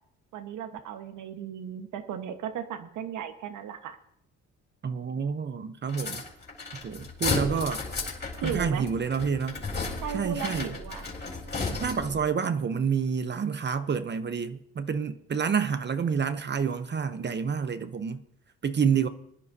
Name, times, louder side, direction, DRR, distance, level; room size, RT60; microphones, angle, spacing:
voice 1, 0.3-4.0 8.4-8.9 10.0-11.1, right 8 dB, 80° right, 1.3 m, -36 dB
voice 2, 4.8-6.2 6.8-7.9 8.4-9.6 10.1-10.7 11.8-18.2 18.6-19.1, right 6 dB, 35° right, 0.7 m, -28 dB
sound 1, 5.9-12.2, left 3 dB, 35° left, 3.7 m, -34 dB
22.0 x 10.5 x 2.7 m
cardioid pair, 90°, 30 cm